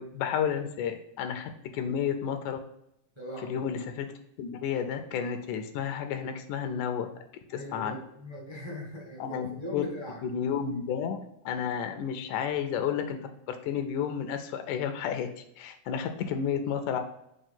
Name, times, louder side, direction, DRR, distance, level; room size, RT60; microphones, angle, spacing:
voice 1, 0.0-2.6 3.4-4.1 4.4-7.1 7.5-8.0 9.2-9.8 10.2-11.2 11.5-13.2 13.5-17.0, left 8 dB, 80° left, 7 dB, 2.1 m, -31 dB
voice 2, 3.1-3.6 7.5-10.2, left 1 dB, 25° right, -4 dB, 0.6 m, -40 dB
5.4 x 3.2 x 5.5 m, 0.78 s
omnidirectional pair, 3.6 m